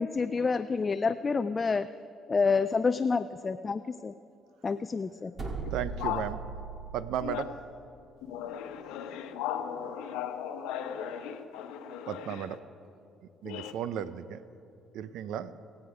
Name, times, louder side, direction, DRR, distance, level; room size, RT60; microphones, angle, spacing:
voice 1, 0.0-1.9 2.3-4.1 4.6-5.3, left 4 dB, 30° left, 0.3 m, -28 dB
sound 1, 5.4-7.4, right 4 dB, 40° right, 2.0 m, -38 dB
voice 2, 5.7-6.4 6.9-7.4 12.1-12.6 13.4-14.4 14.9-15.5, right 9 dB, 80° right, 0.5 m, -34 dB
voice 3, 8.2-12.5 13.4-13.7, left 10 dB, 85° left, 0.9 m, -36 dB
22.0 x 8.4 x 5.0 m
cardioid pair, 85°, 0 cm